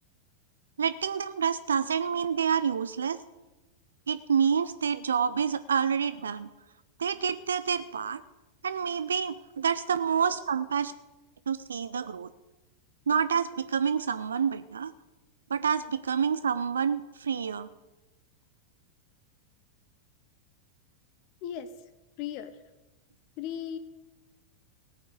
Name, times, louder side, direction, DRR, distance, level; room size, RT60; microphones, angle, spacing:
voice 1, 0.8-3.2 4.1-6.5 7.0-8.2 8.6-10.9 11.5-12.3 13.1-14.9 15.5-17.7, right 7 dB, 70° right, 13 dB, 0.5 m, -28 dB
voice 2, 22.2-22.6 23.4-23.8, left 10 dB, 40° left, 12 dB, 0.9 m, -36 dB
17.5 x 6.0 x 8.3 m, 1.1 s
figure-of-eight pair, 90°, 0 cm